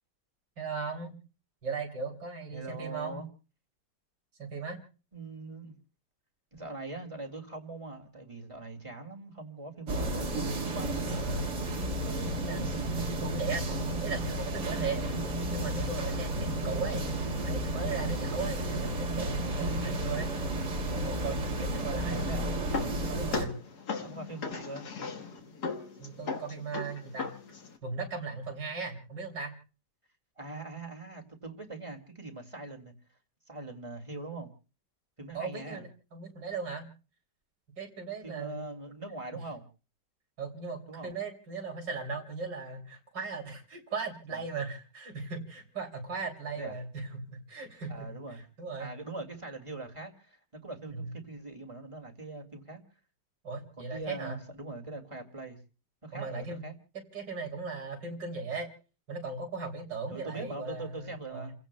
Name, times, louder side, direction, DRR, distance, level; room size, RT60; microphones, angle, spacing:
voice 1, 0.6-1.2 1.6-3.2 4.4-4.8 11.0-11.5 12.4-15.0 15.5-17.0 17.4-20.3 20.9-22.2 23.0-23.5 26.0-27.3 27.8-29.5 35.3-36.9 37.8-38.6 39.3-39.4 40.4-48.1 48.6-48.9 50.9-51.1 53.4-54.4 56.1-56.6 57.1-58.7 59.1-61.5, right 4 dB, 90° right, 3.4 m, -38 dB
voice 2, 2.5-3.3 5.1-5.8 6.5-11.3 12.0-12.5 22.1-22.6 24.0-24.9 30.4-32.9 33.4-34.5 35.2-35.8 38.2-39.7 40.9-41.1 44.3-44.4 46.6-46.8 47.9-48.5 48.8-52.8 53.8-55.6 56.0-56.7 60.1-61.5, right 2 dB, 20° right, 2.0 m, -42 dB
sound 1, 9.9-23.4, right 1 dB, 70° right, 2.5 m, -32 dB
sound 2, 22.0-27.8, left 4 dB, 65° left, 2.0 m, -38 dB
30.0 x 16.5 x 2.2 m
omnidirectional pair, 1.9 m